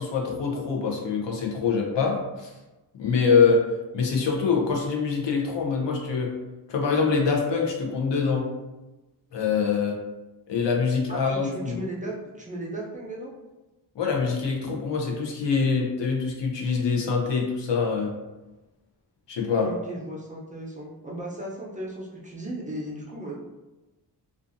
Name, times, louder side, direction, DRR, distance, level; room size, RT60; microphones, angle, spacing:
voice 1, 0.0-2.5 3.0-3.6 3.9-6.3 6.7-8.5 9.3-10.0 10.5-11.8 14.0-18.1 19.3-19.7, left 5 dB, 85° left, 0 dB, 0.7 m, -24 dB
voice 2, 11.1-13.3 19.6-23.4, right 1 dB, 20° right, -5 dB, 0.6 m, -36 dB
2.5 x 2.4 x 2.5 m, 1.1 s
wide cardioid pair, 105°, 42 cm